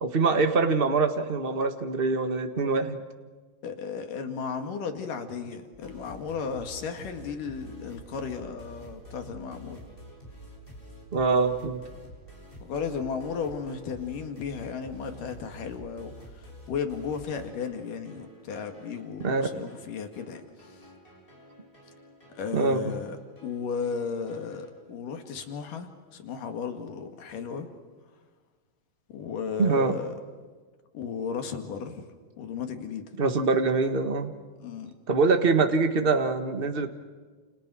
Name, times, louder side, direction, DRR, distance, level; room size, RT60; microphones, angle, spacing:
voice 1, 0.0-3.0 11.1-11.8 19.2-19.5 22.5-23.0 29.6-30.0 33.2-34.3 35.1-36.9, right 4 dB, 40° right, 7 dB, 0.7 m, -24 dB
voice 2, 3.6-9.8 12.6-20.8 22.4-23.2 23.4-27.7 29.1-30.2 30.9-32.1 32.4-33.0 34.6-34.9, left 6 dB, 75° left, 6 dB, 3.6 m, -35 dB
sound 1, 5.7-24.7, equal, 15° left, 7.1 m, -49 dB
30.0 x 29.5 x 6.3 m, 1.5 s
omnidirectional pair, 3.8 m